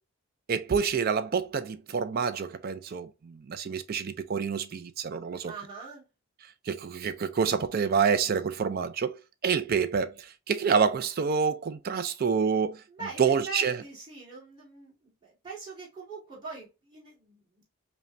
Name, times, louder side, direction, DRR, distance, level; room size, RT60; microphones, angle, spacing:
voice 1, 0.5-5.5 6.7-12.8 13.2-13.8, right 6 dB, 40° right, 0.3 m, -27 dB
voice 2, 5.4-6.0 12.9-17.7, right 4 dB, 20° right, 2.1 m, -43 dB
5.4 x 2.2 x 2.5 m
head